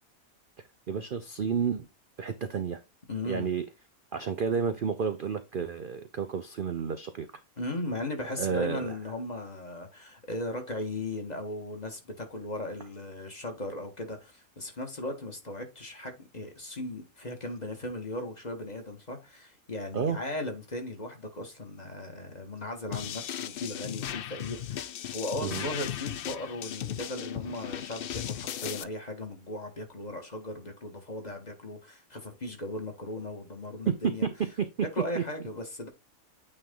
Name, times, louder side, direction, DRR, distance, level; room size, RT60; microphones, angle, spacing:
voice 1, 0.9-1.9 2.2-2.8 3.2-3.7 4.1-7.3 8.4-9.0 19.9-20.2 25.4-25.7 33.9-34.7 35.1-35.2, right 6 dB, 50° right, 0.6 m, -30 dB
voice 2, 3.1-3.5 7.6-34.3 34.9-35.9, left 2 dB, 30° left, 1.6 m, -37 dB
sound 1, 22.9-28.8, left 10 dB, 75° left, 0.5 m, -36 dB
8.8 x 3.4 x 3.7 m
omnidirectional pair, 1.5 m